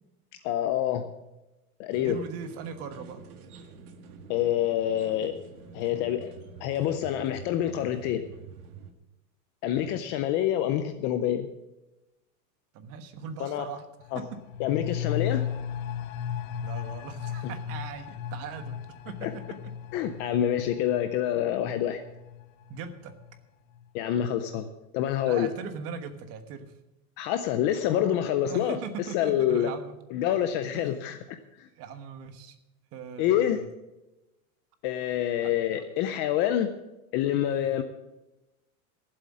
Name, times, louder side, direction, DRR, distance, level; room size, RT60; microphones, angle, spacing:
voice 1, 0.4-1.1 1.8-2.2 4.3-5.4 5.7-6.3 6.6-8.2 9.6-11.5 13.4-13.7 14.1-14.2 14.6-15.5 19.2-19.3 19.9-22.0 23.9-24.7 24.9-25.5 27.2-28.8 29.1-29.7 30.1-31.7 33.2-33.6 34.8-36.7 37.1-37.8, left 11 dB, 25° left, 9 dB, 0.4 m, -27 dB
sound 1, 1.9-8.9, right 5 dB, 85° right, 1.9 m, -47 dB
voice 2, 2.0-3.2 9.7-10.0 12.7-13.8 14.1-14.4 16.6-18.8 19.0-19.7 22.7-23.1 25.2-26.7 28.4-29.9 31.7-32.5 32.9-33.7 35.4-35.5 37.4-37.7, right 6 dB, 35° right, 9 dB, 1.3 m, -40 dB
sound 2, 14.0-23.4 23.7-23.8, left 9 dB, 65° left, 1.0 m, -36 dB
15.0 x 7.8 x 7.4 m, 0.99 s
supercardioid pair, 160°, 43 cm